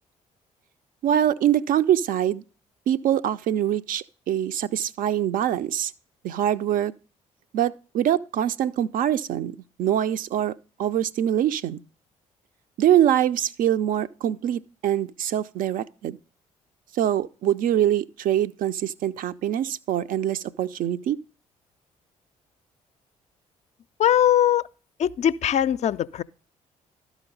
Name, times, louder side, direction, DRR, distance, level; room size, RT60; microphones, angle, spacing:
voice 1, 1.0-2.4 2.9-5.9 6.2-6.9 7.5-10.5 10.8-11.8 12.8-16.2 16.9-21.2, right 11 dB, 50° right, 0.5 m, -24 dB
voice 2, 24.0-24.7 25.0-26.2, left 10 dB, 40° left, 0.4 m, -21 dB
12.5 x 5.0 x 5.3 m
figure-of-eight pair, 45°, 18 cm